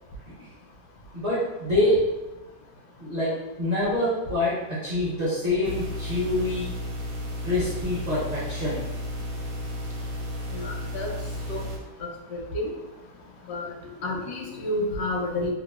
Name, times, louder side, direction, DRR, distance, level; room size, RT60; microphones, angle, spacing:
voice 1, 1.1-2.0 3.0-3.3 3.6-6.7 7.4-8.8 13.8-13.9, left 1 dB, 45° right, -10 dB, 0.5 m, -26 dB
sound 1, 5.6-11.8, left 1 dB, 70° right, 1.0 m, -33 dB
voice 2, 10.5-11.1 11.5-11.6 12.0-12.7 13.5-13.7 14.0-15.5, left 1 dB, 80° left, 0 dB, 1.1 m, -30 dB
2.8 x 2.3 x 2.3 m, 1.0 s
omnidirectional pair, 1.7 m